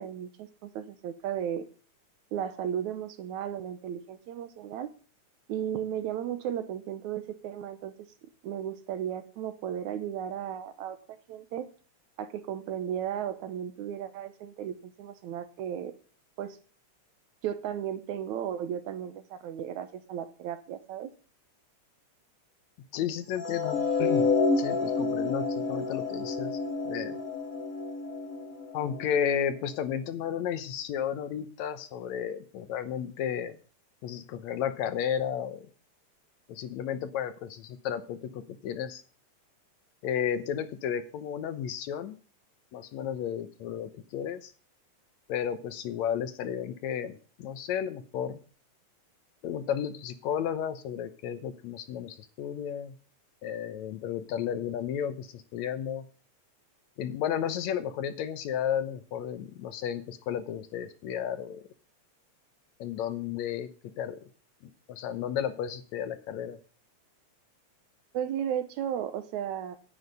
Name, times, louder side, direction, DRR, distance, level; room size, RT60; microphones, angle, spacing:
voice 1, 0.0-1.7 2.3-4.9 5.5-7.9 8.2-11.7 12.2-15.9 16.4-16.6 17.4-21.1 68.1-69.8, right 9 dB, 80° right, 10 dB, 2.3 m, -35 dB
voice 2, 22.9-24.3 24.6-26.6 26.9-27.1 28.7-33.6 34.0-35.7 36.5-39.0 40.0-42.2 42.7-44.5 45.3-48.4 49.4-52.9 53.4-56.1 57.0-61.7 62.8-63.7 64.0-64.2 64.9-66.6, left 9 dB, 75° left, 10 dB, 2.1 m, -33 dB
sound 1, 23.4-29.6, left 4 dB, 45° left, 1.2 m, -29 dB
9.8 x 8.7 x 5.4 m, 0.39 s
omnidirectional pair, 3.4 m